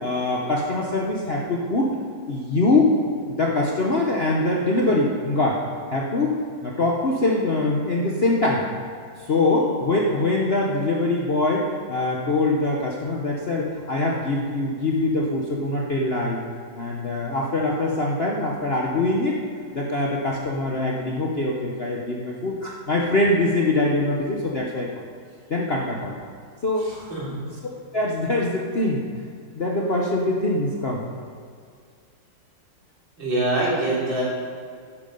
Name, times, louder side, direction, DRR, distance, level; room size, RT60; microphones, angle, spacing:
voice 1, 0.0-1.9 2.3-3.0 3.3-5.6 5.9-6.3 6.6-8.7 9.2-16.4 16.8-19.4 19.7-25.0 25.5-26.1 26.6-26.9 27.9-29.0 29.5-31.0, left 2 dB, 45° left, -2 dB, 0.8 m, -23 dB
voice 2, 26.8-27.4 33.2-34.2, right 1 dB, 70° right, -7 dB, 4.0 m, -25 dB
10.5 x 8.4 x 5.3 m, 2.2 s
omnidirectional pair, 2.1 m